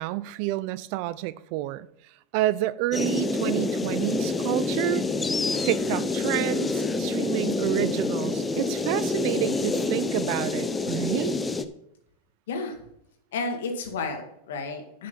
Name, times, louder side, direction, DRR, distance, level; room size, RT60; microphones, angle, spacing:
voice 1, 0.0-1.9 2.3-5.0 5.7-11.4, right 16 dB, 55° right, 0.5 m, -29 dB
sound 1, 2.9-11.6, left 3 dB, 15° left, 0.8 m, -27 dB
voice 2, 13.3-15.1, left 3 dB, 75° left, 2.1 m, -32 dB
9.9 x 6.5 x 5.6 m
hypercardioid pair, 100°, 0 cm